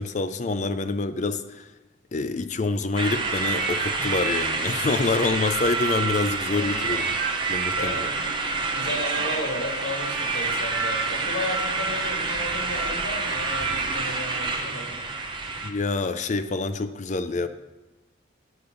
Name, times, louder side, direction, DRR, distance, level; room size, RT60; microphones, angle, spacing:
voice 1, 0.0-1.7 2.1-7.2 7.5-8.1 15.6-17.5, left 3 dB, 35° left, 11 dB, 0.4 m, -26 dB
sound 1, 3.0-15.7, right 3 dB, 25° right, 0.7 m, -28 dB
sound 2, 3.1-6.1 6.5-15.5 16.2-16.4, right 6 dB, 75° right, 1.2 m, -35 dB
voice 2, 6.5-6.8 7.7-15.0, left 1 dB, 55° left, 0 dB, 2.0 m, -34 dB
7.8 x 7.0 x 5.2 m, 1.1 s
head